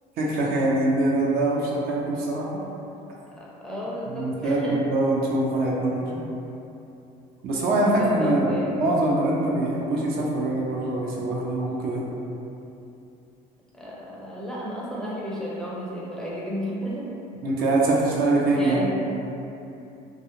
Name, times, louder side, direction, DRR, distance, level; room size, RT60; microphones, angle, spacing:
voice 1, 0.2-2.6 4.1-6.2 7.4-8.5 8.8-12.0 17.4-18.9, right 2 dB, 65° right, -4 dB, 0.5 m, -23 dB
voice 2, 3.4-4.8 7.7-8.8 13.7-17.1 18.6-19.0, equal, 5° left, -7 dB, 0.4 m, -33 dB
2.3 x 2.0 x 2.8 m, 2.8 s
cardioid pair, 110°, 17 cm